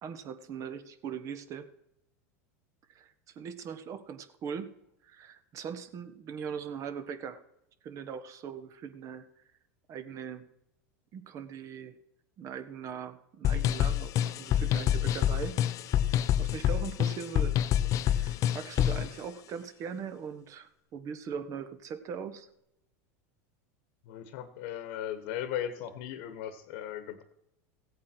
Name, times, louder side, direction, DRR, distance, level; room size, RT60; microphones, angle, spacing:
voice 1, 0.0-1.7 2.9-4.8 5.0-7.4 7.8-9.3 9.9-10.5 11.1-12.0 12.4-15.6 15.9-17.6 18.0-22.5, right 7 dB, 40° right, 10 dB, 1.4 m, -40 dB
sound 1, 13.4-19.1, left 11 dB, 40° left, 0.6 m, -27 dB
voice 2, 24.0-27.2, left 10 dB, 65° left, 10 dB, 1.3 m, -37 dB
16.5 x 8.5 x 4.5 m, 0.81 s
supercardioid pair, 115°, 8 cm